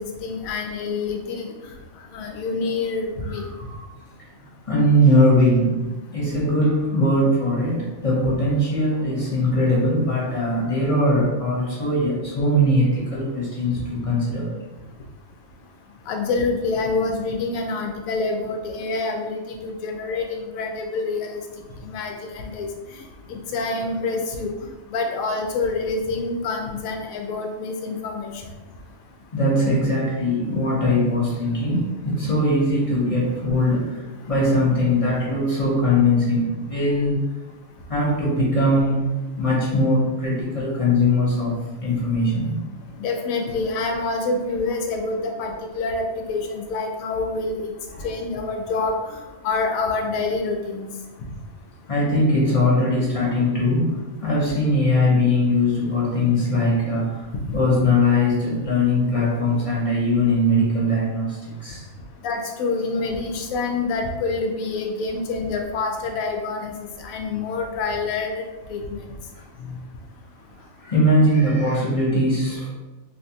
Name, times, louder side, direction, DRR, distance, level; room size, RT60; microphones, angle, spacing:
voice 1, 0.0-1.5 2.1-3.4 16.1-21.4 21.8-22.7 22.9-23.0 23.3-24.5 24.9-28.3 43.0-47.7 48.0-49.2 49.4-50.9 62.2-66.7 67.0-69.0, left 3 dB, 80° left, 3 dB, 1.0 m, -27 dB
voice 2, 3.3-3.8 4.7-14.5 29.3-37.2 37.9-39.1 39.4-42.6 47.9-48.1 51.9-61.9 69.6-69.7 70.6-72.7, left 1 dB, 35° left, -6 dB, 0.6 m, -21 dB
3.4 x 2.6 x 2.7 m, 1.1 s
omnidirectional pair, 1.4 m